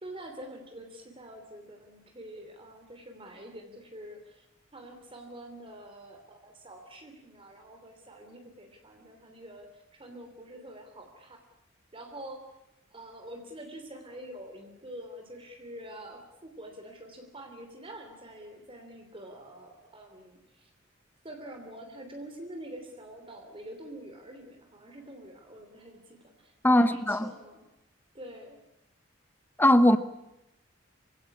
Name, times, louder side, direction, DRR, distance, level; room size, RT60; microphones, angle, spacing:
voice 1, 0.0-4.5 4.7-11.4 11.9-12.5 12.9-20.7 21.2-27.6 28.1-28.6, right 1 dB, 25° right, 3.1 m, -46 dB
voice 2, 26.6-27.3 29.6-30.0, left 1 dB, 10° left, 1.1 m, -20 dB
26.5 x 16.5 x 9.9 m
head